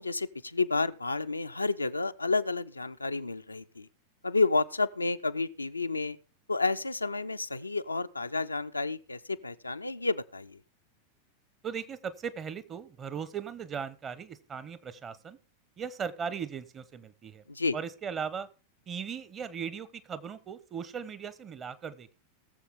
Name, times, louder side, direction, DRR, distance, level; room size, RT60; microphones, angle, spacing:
voice 1, 0.0-3.9 4.2-6.2 6.5-10.6 17.5-17.8, left 3 dB, 80° left, 0.5 m, -30 dB
voice 2, 11.6-15.4 15.8-17.4 17.7-18.5 18.9-22.2, right 7 dB, 25° right, 0.9 m, -38 dB
20.0 x 7.1 x 3.6 m
figure-of-eight pair, 90°, 0 cm